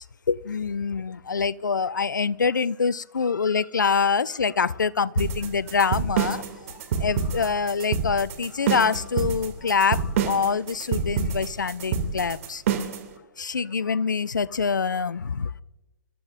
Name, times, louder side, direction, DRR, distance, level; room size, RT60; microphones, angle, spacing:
voice 1, 0.0-12.6 13.4-15.5, left 5 dB, 80° left, 0.6 m, -25 dB
sound 1, 5.2-13.1, right 6 dB, 50° right, 2.5 m, -27 dB
28.0 x 13.5 x 2.6 m
figure-of-eight pair, 125°, 10 cm